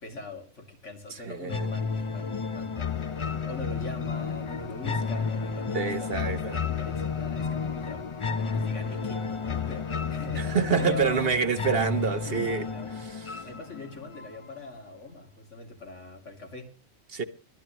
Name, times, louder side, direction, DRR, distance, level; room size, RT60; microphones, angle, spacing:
voice 1, 0.0-2.9 3.5-11.3 12.2-13.0 13.4-16.7, left 2 dB, 75° left, 3.1 m, -42 dB
voice 2, 1.3-1.7 5.7-6.6 10.4-12.6 17.1-17.2, right 6 dB, 50° right, 1.2 m, -27 dB
sound 1, 1.5-14.5, left 5 dB, 30° left, 0.7 m, -32 dB
23.0 x 12.5 x 3.0 m
omnidirectional pair, 1.3 m